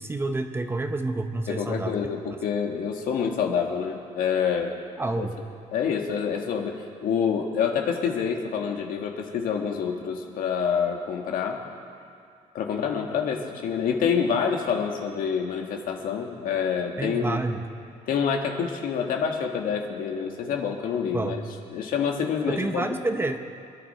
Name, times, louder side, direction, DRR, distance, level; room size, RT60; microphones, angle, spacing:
voice 1, 0.0-2.0 5.0-5.4 17.0-17.6 21.1-21.3 22.5-23.4, right 2 dB, 15° right, 6 dB, 0.9 m, -28 dB
voice 2, 1.5-4.7 5.2-5.3 5.7-11.6 12.5-17.4 18.1-21.4 21.7-22.9, left 7 dB, 70° left, 2 dB, 2.0 m, -27 dB
27.0 x 11.0 x 4.4 m, 2.4 s
cardioid pair, 125°, 15 cm